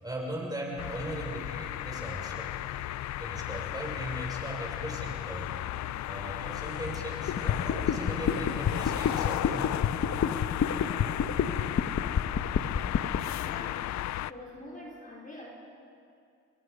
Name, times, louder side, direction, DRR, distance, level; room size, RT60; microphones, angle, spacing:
voice 1, 0.0-2.7 3.2-5.5 6.1-9.8, right 1 dB, 15° right, -1 dB, 6.4 m, -38 dB
sound 1, 0.8-14.3, left 14 dB, 70° left, 0.5 m, -35 dB
sound 2, 7.3-13.2, left 7 dB, 50° left, 1.3 m, -27 dB
voice 2, 13.4-14.0 14.2-15.5, left 1 dB, 25° left, -3 dB, 4.7 m, -45 dB
29.5 x 22.0 x 5.5 m, 2.4 s
cardioid pair, 90°, 30 cm